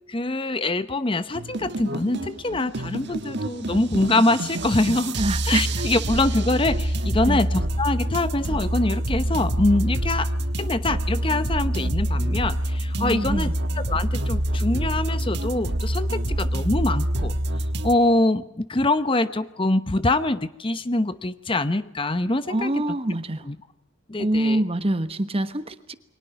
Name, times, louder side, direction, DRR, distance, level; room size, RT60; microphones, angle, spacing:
voice 1, 0.1-5.2 5.5-10.3 10.6-13.5 13.8-17.3 17.8-22.8 23.5-23.6 24.1-24.6, left 2 dB, 25° left, 12 dB, 0.8 m, -24 dB
sound 1, 1.3-17.9, right 1 dB, 60° right, 1.3 m, -26 dB
voice 2, 5.2-5.7 7.3-7.4 13.0-13.5 22.5-23.5 24.2-25.9, right 1 dB, 30° right, 11 dB, 1.2 m, -25 dB
29.0 x 23.5 x 5.8 m, 0.83 s
head